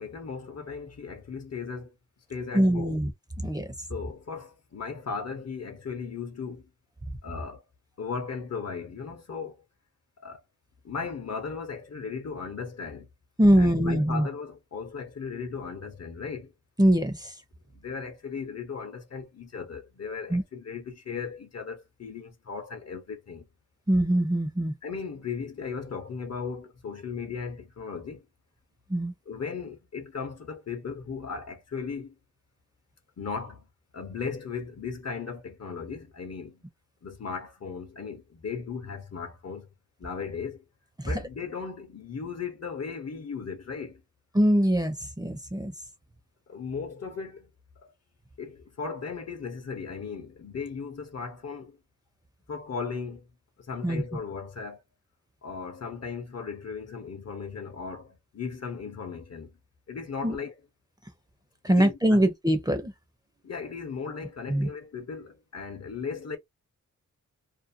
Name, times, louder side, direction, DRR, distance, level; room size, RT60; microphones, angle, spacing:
voice 1, 0.0-1.9 2.3-3.0 3.9-6.7 7.2-7.6 8.0-9.6 10.2-10.4 10.8-13.1 13.6-16.5 17.7-23.5 24.8-28.3 29.3-32.1 33.2-33.7 33.9-36.6 37.0-39.7 40.0-40.6 41.0-44.0 46.5-47.9 48.4-51.8 52.5-53.3 53.6-54.8 55.4-59.6 59.9-60.5 61.7-62.3 63.4-66.4, left 5 dB, 55° left, 0.8 m, -37 dB
voice 2, 2.5-3.1 3.4-3.7 13.4-14.3 16.8-17.3 20.3-20.4 23.9-24.7 28.9-29.1 41.0-41.1 44.3-45.7 53.8-54.0 60.2-60.4 61.6-62.9 64.5-64.7, right 1 dB, 15° right, 0.7 m, -23 dB
2.6 x 2.2 x 2.6 m
wide cardioid pair, 80°, 31 cm